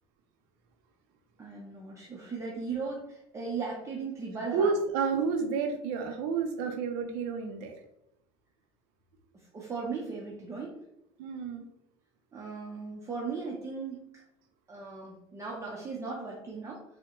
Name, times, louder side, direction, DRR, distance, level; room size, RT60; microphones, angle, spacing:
voice 1, 1.4-4.7 9.3-10.8 11.6-11.7 12.3-14.2 14.7-16.8, right 4 dB, 20° right, -3 dB, 0.6 m, -37 dB
voice 2, 4.5-7.7 11.2-11.6, right 5 dB, 75° right, 4 dB, 0.5 m, -30 dB
3.2 x 2.1 x 2.9 m, 0.81 s
supercardioid pair, 100°, 14 cm